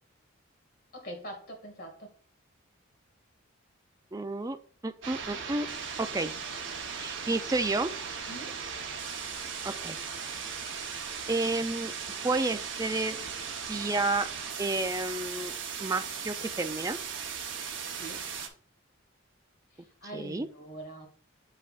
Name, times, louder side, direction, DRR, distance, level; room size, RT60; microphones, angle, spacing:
voice 1, 0.9-2.1 8.3-8.6 18.0-18.2 20.0-21.1, right 1 dB, 45° left, 2.1 m, -43 dB
voice 2, 4.1-4.6 4.8-5.7 6.0-6.3 6.8-7.9 9.6-10.0 10.4-10.6 11.3-11.9 12.2-13.2 13.6-14.3 14.6-15.5 15.8-17.0 20.1-20.5, right 2 dB, 15° right, 0.4 m, -30 dB
sound 1, 5.0-18.5, right 6 dB, 60° right, 1.0 m, -38 dB
7.7 x 5.6 x 2.4 m
head